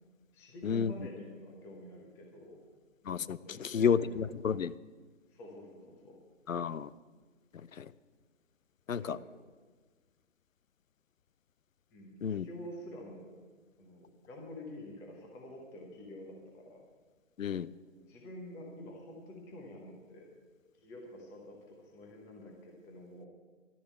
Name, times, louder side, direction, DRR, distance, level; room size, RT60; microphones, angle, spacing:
voice 1, 0.3-2.6 3.4-4.2 5.3-6.2 9.0-9.2 11.9-13.4 13.8-16.8 17.9-20.3 20.8-23.3, left 1 dB, 5° left, 0 dB, 0.9 m, -48 dB
voice 2, 3.1-4.7 6.5-6.9 7.8-7.9 8.9-9.2 12.2-12.5 17.4-17.7, left 7 dB, 85° left, 18 dB, 0.6 m, -31 dB
12.0 x 6.7 x 8.6 m, 1.4 s
figure-of-eight pair, 150°, 38 cm